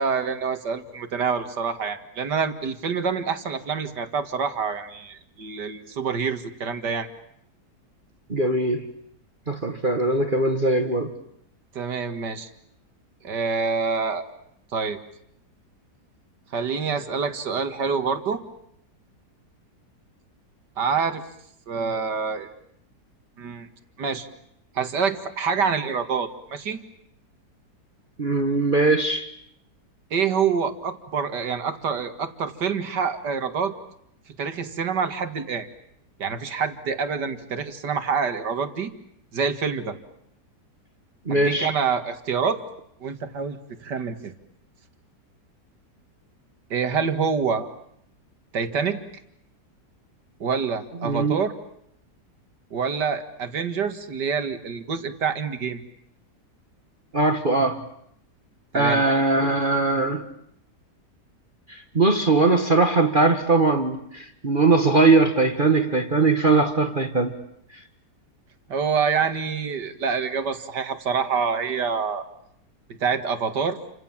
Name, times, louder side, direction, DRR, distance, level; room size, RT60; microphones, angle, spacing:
voice 1, 0.0-7.1 11.7-12.5 13.2-14.2 14.7-15.0 16.5-18.4 20.8-21.2 21.7-22.5 23.4-23.7 24.0-24.3 24.7-26.8 30.1-33.7 34.3-35.7 36.2-38.9 39.3-40.0 41.3-42.6 43.0-44.3 46.7-47.7 48.5-49.0 50.4-51.5 52.7-55.8 58.7-59.2 68.7-72.3 72.9-73.8, right 6 dB, 80° right, 9 dB, 2.5 m, -26 dB
voice 2, 8.3-8.8 9.5-11.1 28.2-29.3 41.2-41.7 51.0-51.4 57.1-57.8 58.7-60.2 61.7-67.3, right 3 dB, 30° right, 6 dB, 1.7 m, -20 dB
30.0 x 26.0 x 7.4 m, 0.72 s
omnidirectional pair, 1.8 m